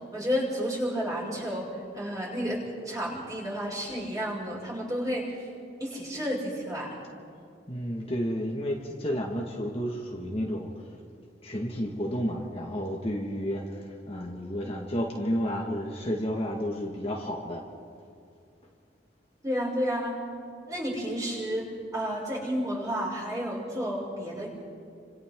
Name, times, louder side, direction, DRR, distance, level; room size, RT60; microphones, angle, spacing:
voice 1, 0.1-5.4 5.8-7.0 19.4-20.2 20.7-24.5, equal, 20° right, -5 dB, 6.3 m, -31 dB
voice 2, 7.7-10.7 11.4-13.6 14.1-17.6, equal, 30° left, -1 dB, 1.9 m, -31 dB
29.5 x 26.5 x 3.8 m, 2.4 s
head